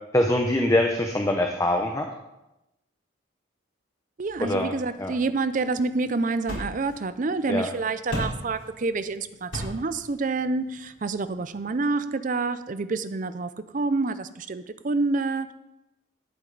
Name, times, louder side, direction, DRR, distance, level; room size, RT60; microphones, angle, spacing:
voice 1, 0.1-2.1 4.4-4.7 5.0-5.1 7.5-7.7, left 1 dB, 15° left, 3 dB, 0.7 m, -23 dB
voice 2, 4.2-15.5, right 3 dB, 40° right, 12 dB, 0.5 m, -28 dB
sound 1, 4.8-11.9, left 1 dB, 65° left, 4.1 m, -39 dB
11.5 x 8.8 x 3.9 m, 0.93 s
head